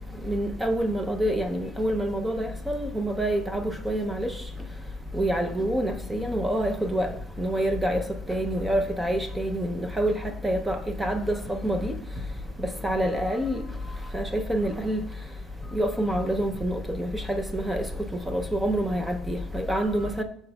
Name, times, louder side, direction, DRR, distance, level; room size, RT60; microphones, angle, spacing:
voice 1, 0.2-4.3 5.1-7.1 7.4-8.0 8.3-10.1 10.4-11.9 12.6-13.6 14.1-15.0 15.7-17.9 18.3-20.2, right 1 dB, 5° right, 0.5 m, -27 dB
10.5 x 5.9 x 2.2 m
cardioid pair, 180°, 0 cm